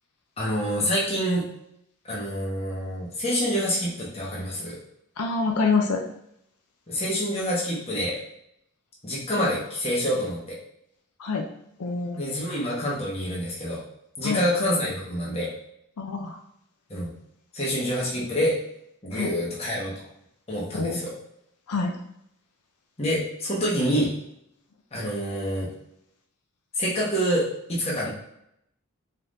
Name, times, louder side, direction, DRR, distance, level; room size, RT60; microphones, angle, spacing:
voice 1, 0.4-1.4 2.0-4.8 6.9-8.2 9.0-10.6 12.2-13.8 14.2-15.5 16.9-17.1 17.5-18.6 19.0-19.9 20.5-21.1 23.0-24.1 24.9-25.7 26.8-28.1, equal, 25° left, -5 dB, 1.2 m, -27 dB
voice 2, 5.2-6.0 11.2-11.5 11.8-12.2 14.2-14.4 16.0-16.4 19.1-19.3 20.7-21.0 21.7-21.9, left 4 dB, 90° left, 3 dB, 0.5 m, -26 dB
4.4 x 3.7 x 2.6 m, 0.77 s
head